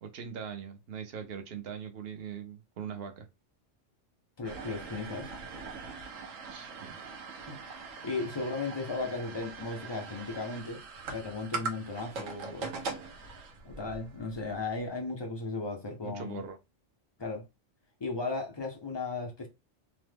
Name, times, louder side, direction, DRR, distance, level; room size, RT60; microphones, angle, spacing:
voice 1, 0.0-3.3 6.4-7.0 13.8-13.9 16.0-16.6, right 7 dB, 60° right, 0.8 m, -41 dB
voice 2, 4.4-5.3 7.5-7.6 8.0-10.8 11.1-12.7 13.6-16.4 17.2-17.4 18.0-19.5, left 3 dB, 45° left, 0.3 m, -36 dB
sound 1, 4.4-14.8, right 4 dB, 90° right, 1.1 m, -42 dB
3.0 x 2.0 x 3.3 m
omnidirectional pair, 1.3 m